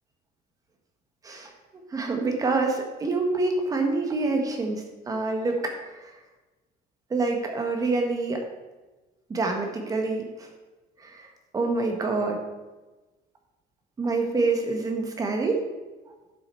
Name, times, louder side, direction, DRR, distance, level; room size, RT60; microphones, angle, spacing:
voice 1, 1.9-6.1 7.1-8.4 9.3-10.5 11.0-11.3 11.5-12.4 14.0-15.6, right 3 dB, 20° right, 3 dB, 1.4 m, -26 dB
11.0 x 6.7 x 4.5 m, 1.2 s
cardioid pair, 170°, 17 cm